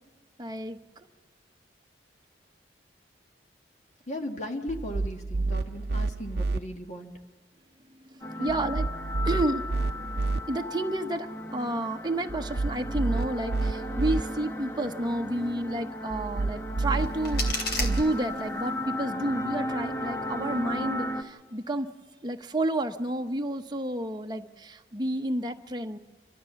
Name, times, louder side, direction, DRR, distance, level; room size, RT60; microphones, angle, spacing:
voice 1, 0.4-1.1 8.0-9.7 10.5-21.9 22.2-26.0, right 1 dB, 25° right, 5 dB, 0.9 m, -31 dB
voice 2, 4.1-7.1 8.4-8.6, left 1 dB, 40° left, 3 dB, 1.4 m, -36 dB
sound 1, 4.7-6.6 8.5-10.4 12.3-14.2 16.1-18.0, right 3 dB, 65° right, 0.6 m, -29 dB
sound 2, 8.2-21.2, left 1 dB, 15° left, 0.9 m, -35 dB
sound 3, 16.8-18.8, left 2 dB, 65° left, 3.2 m, -34 dB
29.5 x 13.0 x 7.1 m, 1.5 s
head